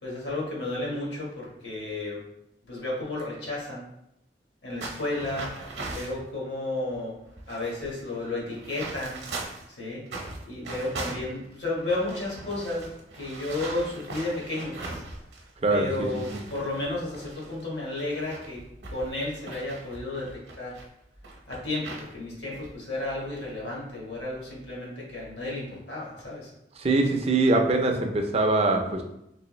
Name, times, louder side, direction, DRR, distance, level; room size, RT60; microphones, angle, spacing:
voice 1, 0.0-2.2 2.7-3.8 4.6-5.5 5.9-7.2 7.5-9.2 9.7-10.0 10.4-15.0 15.7-18.6 18.9-20.8 21.5-26.5, left 2 dB, 65° left, -4 dB, 1.4 m, -32 dB
sound 1, 4.8-6.2 6.9-7.0 7.3-9.7 10.1-15.5 15.8-20.8 21.2-22.1 22.5-22.7 23.2-23.5, right 2 dB, 65° right, 0.8 m, -40 dB
voice 2, 15.6-16.4 26.8-29.0, right 2 dB, 35° right, 3 dB, 0.4 m, -23 dB
3.4 x 3.0 x 3.0 m, 0.82 s
head